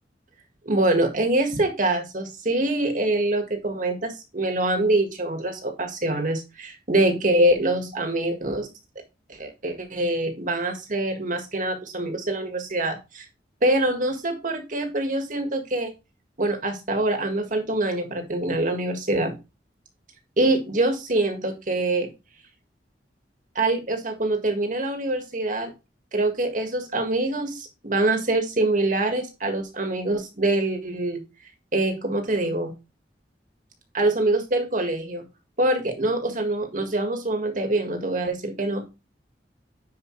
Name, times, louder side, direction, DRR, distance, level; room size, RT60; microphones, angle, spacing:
voice 1, 0.7-8.7 9.3-13.3 13.6-15.9 16.4-19.4 20.4-22.1 23.6-25.7 26.1-31.2 31.7-32.7 33.9-35.3 35.6-38.9, right 2 dB, 50° right, 5 dB, 1.8 m, -24 dB
10.0 x 4.9 x 3.2 m, 0.26 s
head